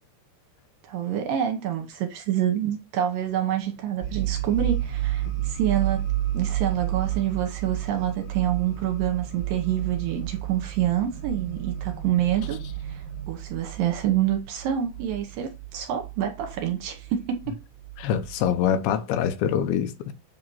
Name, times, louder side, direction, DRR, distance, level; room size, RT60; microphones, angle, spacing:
voice 1, 0.8-6.0 6.3-12.6 12.8-17.6, right 10 dB, 70° right, 2.5 m, -27 dB
sound 1, 3.3-13.3, right 2 dB, 60° left, 1.3 m, -47 dB
sound 2, 4.0-18.7, right 14 dB, 45° right, 1.8 m, -31 dB
voice 2, 18.0-20.1, left 9 dB, 80° left, 2.7 m, -24 dB
7.8 x 2.9 x 5.5 m
omnidirectional pair, 4.5 m